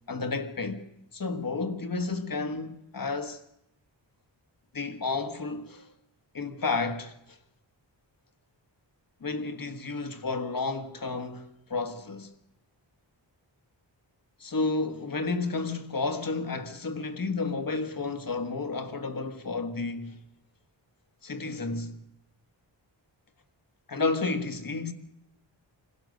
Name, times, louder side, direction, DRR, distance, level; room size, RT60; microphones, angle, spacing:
voice 1, 0.1-0.8 1.1-3.4 4.7-5.9 6.3-7.4 9.2-12.3 14.4-20.2 21.2-22.0 23.9-24.9, left 3 dB, 50° left, 1.6 m, -31 dB
27.0 x 16.5 x 6.6 m
wide cardioid pair, 125°, 45 cm